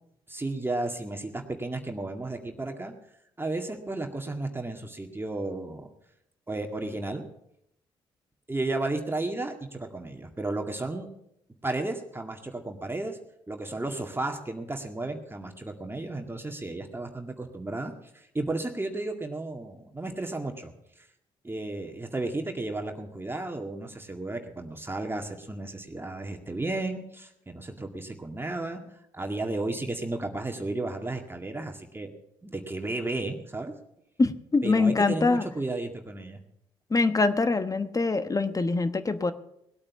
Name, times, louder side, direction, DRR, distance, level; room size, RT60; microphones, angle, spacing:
voice 1, 0.3-2.9 3.4-5.9 6.5-7.2 8.5-11.1 11.6-13.2 13.5-20.7 21.0-21.1 21.4-28.8 29.1-32.1 32.4-33.7 34.6-36.4, right 2 dB, 20° right, 3 dB, 2.0 m, -33 dB
voice 2, 34.2-35.5 36.9-39.3, left 3 dB, 30° left, 11 dB, 1.1 m, -24 dB
19.0 x 8.7 x 5.9 m, 0.80 s
hypercardioid pair, 45°, 12 cm